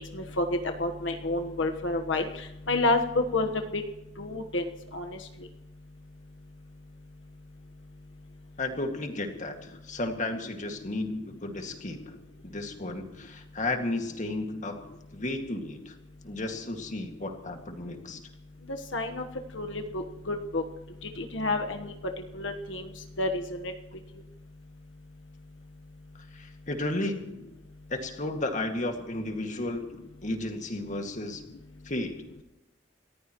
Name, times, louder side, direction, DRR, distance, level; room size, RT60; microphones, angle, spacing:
voice 1, 0.0-3.8 4.2-5.2 18.7-19.2 19.5-20.6 21.0-21.9 22.3-22.9 23.2-23.7, left 2 dB, 85° left, 4 dB, 1.3 m, -30 dB
voice 2, 8.6-12.1 12.4-16.0 16.2-18.2 26.3-27.4 27.9-29.9 30.2-31.4 31.8-32.2, left 2 dB, 40° left, 4 dB, 2.1 m, -33 dB
29.0 x 14.5 x 3.1 m, 0.99 s
head